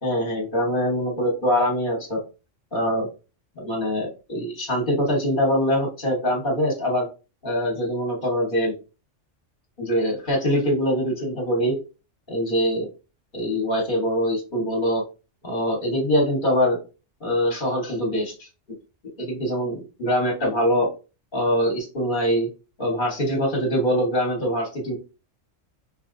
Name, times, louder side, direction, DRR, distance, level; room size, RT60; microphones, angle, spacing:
voice 1, 0.0-2.2 2.7-3.1 3.6-7.1 7.4-8.7 9.8-11.7 12.3-12.9 13.3-15.0 15.4-16.8 17.2-18.5 19.2-20.9 21.3-22.5 22.8-24.9, equal, 45° left, -2 dB, 1.4 m, -23 dB
5.5 x 3.1 x 2.6 m, 0.32 s
omnidirectional pair, 1.2 m